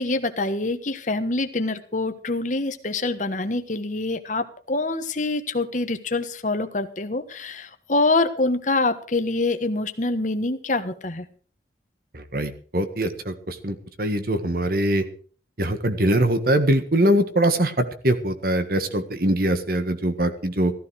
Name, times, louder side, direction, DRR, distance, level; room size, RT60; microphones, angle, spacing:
voice 1, 0.0-11.3, left 2 dB, 45° left, 9 dB, 1.3 m, -25 dB
voice 2, 12.1-15.0 15.6-20.7, right 1 dB, 55° right, 9 dB, 1.6 m, -22 dB
15.0 x 13.5 x 4.8 m, 0.42 s
head